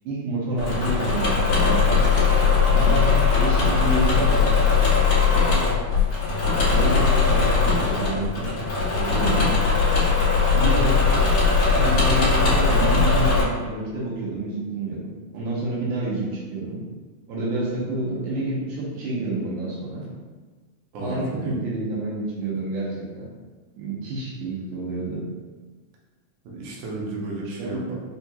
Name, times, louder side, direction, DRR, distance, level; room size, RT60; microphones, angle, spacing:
voice 1, 0.0-2.0 2.7-4.5 5.2-5.6 6.6-8.5 9.0-9.5 10.5-11.0 11.8-16.8 17.3-20.1 21.0-23.3 23.8-25.2 27.5-28.0, right 2 dB, 90° right, -6 dB, 2.5 m, -28 dB
Engine / Mechanisms, 0.6-13.4, left 5 dB, 60° left, 2.4 m, -20 dB
voice 2, 20.9-21.6 26.4-28.0, right 2 dB, 70° right, -3 dB, 1.6 m, -33 dB
5.7 x 2.4 x 2.8 m, 1.3 s
omnidirectional pair, 3.4 m